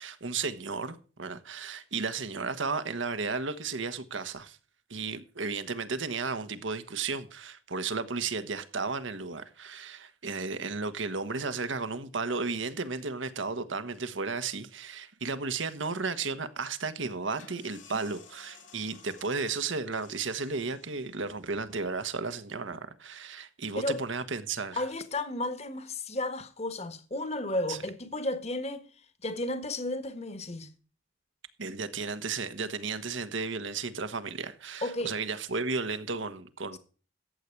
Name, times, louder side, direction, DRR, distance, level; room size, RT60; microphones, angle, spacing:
voice 1, 0.0-4.6 4.9-24.8 27.7-27.8 31.6-36.8, right 4 dB, 80° right, 1.4 m, -34 dB
sound 1, 17.2-22.7, left 6 dB, 80° left, 3.0 m, -56 dB
voice 2, 24.7-28.8 29.2-30.7 34.8-35.1, left 1 dB, 35° left, 1.5 m, -33 dB
14.0 x 8.4 x 4.6 m
head